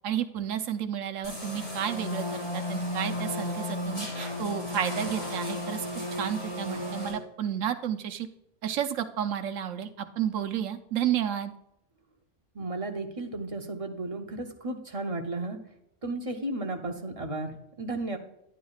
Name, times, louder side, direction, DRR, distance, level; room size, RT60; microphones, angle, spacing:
voice 1, 0.0-5.9 6.2-8.3 8.6-11.5, right 9 dB, 85° right, 8 dB, 1.1 m, -31 dB
sound 1, 1.2-7.1, left 1 dB, 35° left, 4.0 m, -34 dB
voice 2, 12.5-15.6 16.0-18.2, right 2 dB, 35° right, 4 dB, 0.7 m, -34 dB
11.0 x 9.3 x 2.4 m, 0.80 s
omnidirectional pair, 1.3 m